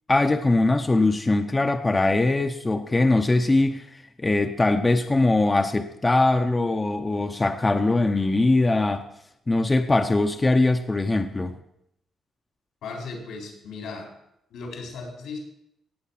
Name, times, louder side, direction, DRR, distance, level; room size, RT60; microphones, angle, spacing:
voice 1, 0.1-9.0 9.5-11.6, left 2 dB, 20° left, 6 dB, 0.8 m, -21 dB
voice 2, 12.8-14.1 14.5-15.4, left 4 dB, 85° left, 1 dB, 4.6 m, -36 dB
17.5 x 7.9 x 5.8 m, 0.77 s
cardioid pair, 110°, 0 cm